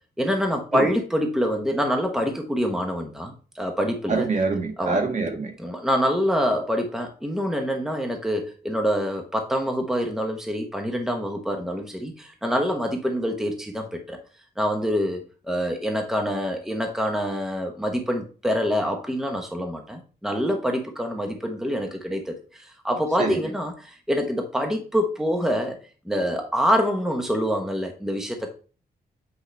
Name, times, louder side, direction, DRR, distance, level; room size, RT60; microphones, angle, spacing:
voice 1, 0.2-4.3 4.8-5.0 5.6-14.2 14.6-25.8 26.1-28.5, equal, 5° right, 3 dB, 1.0 m, -26 dB
voice 2, 4.1-5.5 23.2-23.4, right 3 dB, 45° right, 3 dB, 1.6 m, -25 dB
8.2 x 4.8 x 3.3 m, 0.38 s
wide cardioid pair, 125°, 17 cm